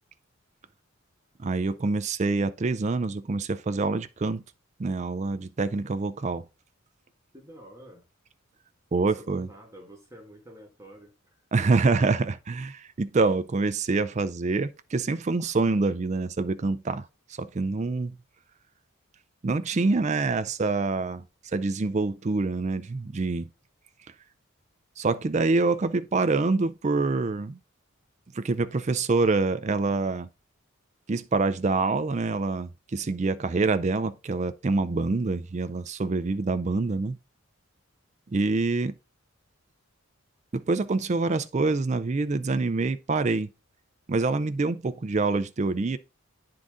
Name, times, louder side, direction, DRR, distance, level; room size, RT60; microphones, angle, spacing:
voice 1, 1.4-4.4 4.8-6.5 8.9-9.5 11.5-17.1 17.4-18.2 19.4-21.2 21.5-23.5 25.0-27.6 28.3-30.3 31.1-37.2 38.3-38.9 40.5-43.5 44.1-46.0, right 3 dB, 35° right, 0.4 m, -26 dB
voice 2, 7.3-8.0 8.9-11.4, equal, 15° right, 1.6 m, -48 dB
9.6 x 3.8 x 3.7 m
head